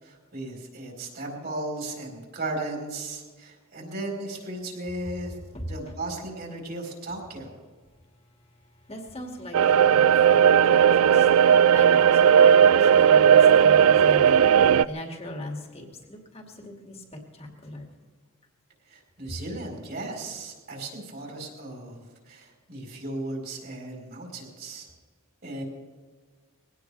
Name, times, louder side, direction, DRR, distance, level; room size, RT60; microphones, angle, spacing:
voice 1, 0.0-5.4 5.7-7.5 18.9-24.9 25.4-25.6, right 2 dB, 45° right, 0 dB, 4.5 m, -36 dB
voice 2, 8.6-17.9, left 1 dB, 30° left, 2 dB, 2.4 m, -40 dB
sound 1, 9.5-14.8, right 8 dB, 85° right, 0.4 m, -16 dB
22.0 x 17.5 x 3.5 m, 1.4 s
head